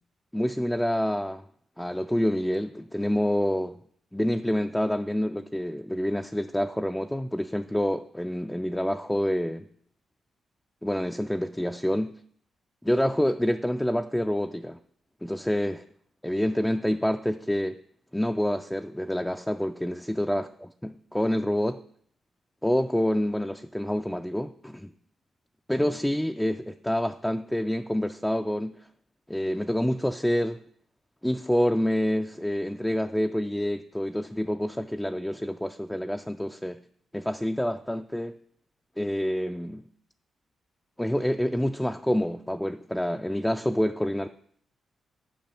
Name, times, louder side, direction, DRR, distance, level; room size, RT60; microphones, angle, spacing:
voice 1, 0.3-1.4 1.8-3.8 4.1-9.7 10.8-12.1 12.8-14.8 15.2-15.8 16.2-17.8 18.1-20.5 20.8-21.8 22.6-24.9 25.7-28.8 29.3-30.6 31.2-36.8 37.1-38.3 39.0-39.8 41.0-44.3, equal, 5° left, 6 dB, 0.3 m, -27 dB
9.3 x 5.3 x 5.8 m, 0.63 s
cardioid pair, 125°, 0 cm